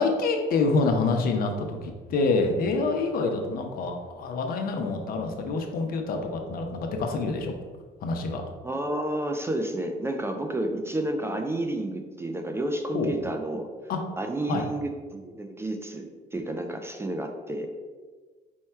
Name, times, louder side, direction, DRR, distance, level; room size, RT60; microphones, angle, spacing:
voice 1, 0.0-7.5 8.0-8.4 12.9-13.1 13.9-14.0 14.5-14.6, left 3 dB, 60° left, 4 dB, 0.7 m, -26 dB
voice 2, 8.6-13.7 14.2-17.7, right 1 dB, 15° right, 4 dB, 0.3 m, -31 dB
4.5 x 2.2 x 4.3 m, 1.4 s
cardioid pair, 110°, 17 cm